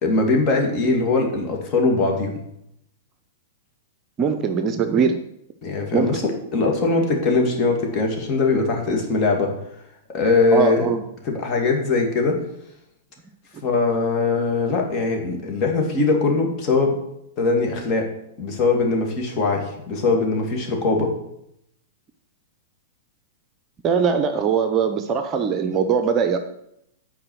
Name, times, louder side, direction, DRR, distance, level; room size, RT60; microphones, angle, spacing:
voice 1, 0.0-2.4 5.6-9.5 10.1-10.9 11.2-12.4 13.6-17.0 17.4-18.1 18.4-21.1, left 3 dB, 35° left, 1 dB, 2.3 m, -21 dB
voice 2, 4.2-5.2 5.9-6.2 10.5-11.0 23.8-26.4, right 6 dB, 30° right, 8 dB, 0.7 m, -21 dB
8.8 x 4.9 x 6.3 m, 0.77 s
figure-of-eight pair, 100°, 0 cm